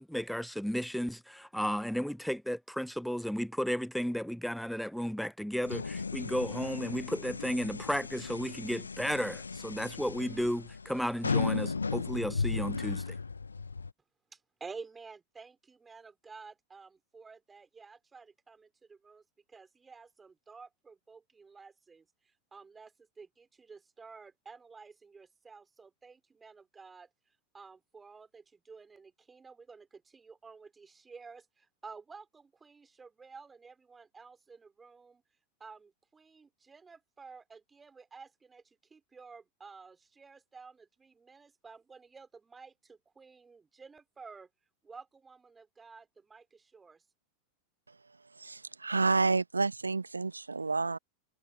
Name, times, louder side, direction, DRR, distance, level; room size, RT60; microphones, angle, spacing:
voice 1, 0.0-13.2, equal, ahead, 0.5 m, -34 dB
sound 1, 5.6-13.9, left 4 dB, 80° left, 0.8 m, -36 dB
voice 2, 14.3-19.2 19.5-22.0 22.5-27.1 27.5-35.2 35.6-38.6 38.9-44.5 44.8-47.0, right 4 dB, 15° right, 3.2 m, -52 dB
voice 3, 48.4-51.0, right 3 dB, 80° right, 1.2 m, -29 dB
figure-of-eight pair, 90°, 0 cm